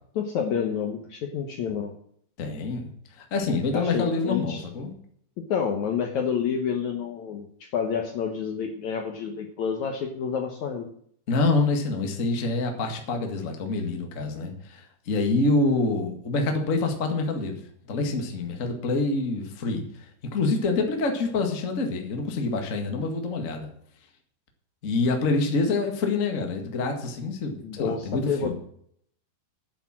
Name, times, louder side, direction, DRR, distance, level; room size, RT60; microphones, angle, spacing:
voice 1, 0.2-1.9 3.7-4.6 5.5-10.9 27.6-28.5, left 7 dB, 65° left, 4 dB, 2.0 m, -29 dB
voice 2, 2.4-2.9 3.2-4.9 11.3-17.6 17.8-20.0 20.3-23.7 24.8-28.5, left 3 dB, 35° left, 3 dB, 1.3 m, -26 dB
9.7 x 7.9 x 7.5 m, 0.65 s
omnidirectional pair, 4.4 m